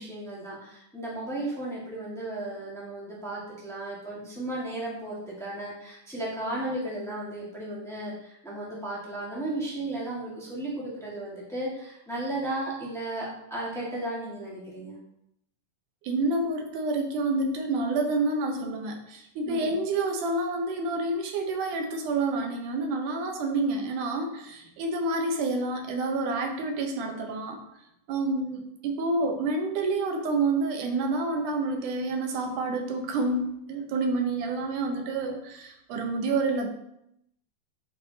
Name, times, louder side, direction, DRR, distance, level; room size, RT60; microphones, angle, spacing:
voice 1, 0.0-15.0 19.5-19.7, right 1 dB, 5° left, -6 dB, 0.3 m, -35 dB
voice 2, 16.0-27.6 28.1-36.7, right 2 dB, 80° right, 4 dB, 2.4 m, -28 dB
10.5 x 4.6 x 2.8 m, 0.79 s
omnidirectional pair, 3.6 m